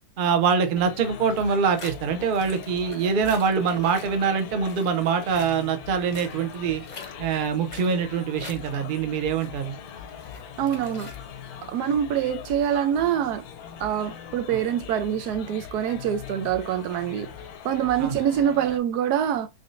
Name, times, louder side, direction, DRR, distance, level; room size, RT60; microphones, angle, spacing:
voice 1, 0.2-6.8 7.2-9.8 14.5-14.6 18.0-18.2, right 6 dB, 50° right, 0.6 m, -24 dB
sound 1, 0.7-18.8, left 8 dB, 75° left, 1.1 m, -41 dB
sound 2, 1.3-11.8, left 3 dB, 35° left, 0.7 m, -46 dB
voice 2, 10.6-11.1 11.7-13.4 13.8-17.3 17.6-19.5, right 9 dB, 90° right, 1.2 m, -25 dB
3.8 x 3.4 x 2.5 m
omnidirectional pair, 1.6 m